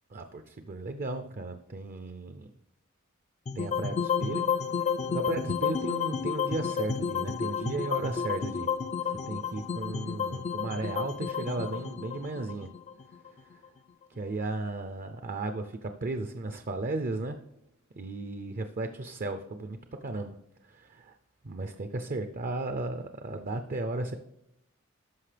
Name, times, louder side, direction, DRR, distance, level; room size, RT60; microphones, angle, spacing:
voice 1, 0.1-2.5 3.6-4.5 4.8-8.7 9.0-12.7 13.1-13.6 14.1-17.4 18.0-19.8 20.0-21.2 21.4-24.1, right 2 dB, 40° right, 8 dB, 0.5 m, -35 dB
sound 1, 3.5-13.7, left 6 dB, 30° left, 0.3 m, -31 dB
13.0 x 5.2 x 3.3 m, 0.83 s
head